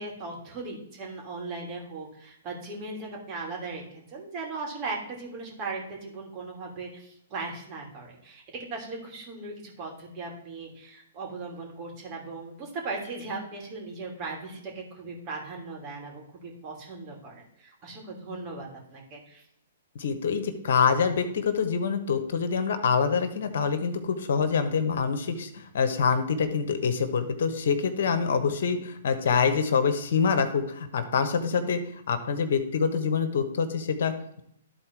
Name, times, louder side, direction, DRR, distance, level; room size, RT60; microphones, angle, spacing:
voice 1, 0.0-19.4, right 3 dB, 35° right, -1 dB, 3.0 m, -38 dB
voice 2, 19.9-31.8 32.1-34.4, left 6 dB, 65° left, 8 dB, 1.1 m, -26 dB
12.5 x 4.2 x 4.6 m, 0.74 s
hypercardioid pair, 130°, 0 cm